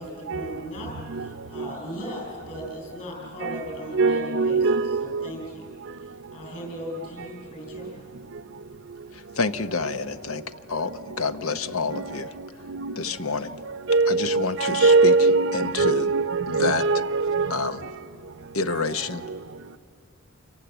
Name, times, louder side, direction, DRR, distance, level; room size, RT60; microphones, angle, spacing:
voice 1, 0.0-5.7 6.3-8.0, equal, 40° left, 7.1 m, -38 dB
voice 2, 3.9-5.3 11.9-12.1 12.7-12.9 13.9-17.7, right 3 dB, 60° right, 0.6 m, -22 dB
voice 3, 9.1-10.4 10.7-12.3 13.0-13.6 14.1-15.1 15.5-16.1 16.5-16.8 17.5-17.8 18.5-19.3, left 4 dB, 90° left, 0.9 m, -28 dB
28.5 x 25.5 x 8.1 m
head